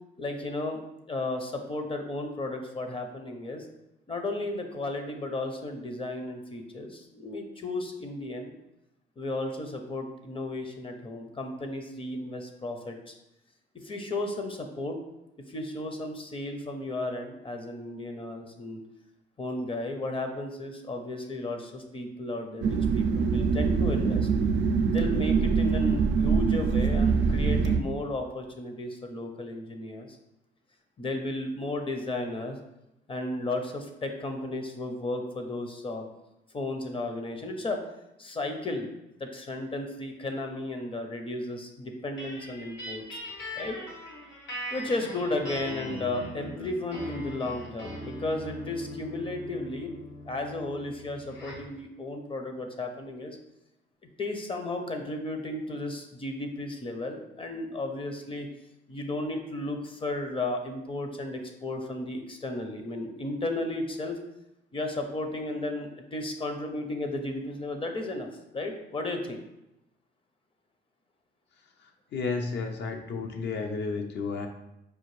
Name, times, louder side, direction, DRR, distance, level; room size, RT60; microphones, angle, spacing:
voice 1, 0.2-0.8 1.1-3.7 4.1-8.5 9.2-13.2 13.7-15.0 15.5-18.8 19.4-24.3 24.9-30.1 31.0-32.6 33.1-36.0 36.5-37.8 38.2-38.9 39.2-43.2 43.6-43.8 44.7-49.9 50.3-53.4 54.2-58.5 58.9-64.2 64.7-69.4, left 2 dB, 30° left, 5 dB, 0.6 m, -34 dB
sound 1, 22.6-27.8, right 5 dB, 75° right, 0.4 m, -24 dB
sound 2, 42.2-51.7, left 1 dB, 90° left, 1.2 m, -40 dB
voice 2, 71.8-74.5, left 4 dB, 70° left, 3 dB, 0.6 m, -32 dB
4.8 x 2.5 x 3.1 m, 0.89 s
cardioid pair, 105°, 19 cm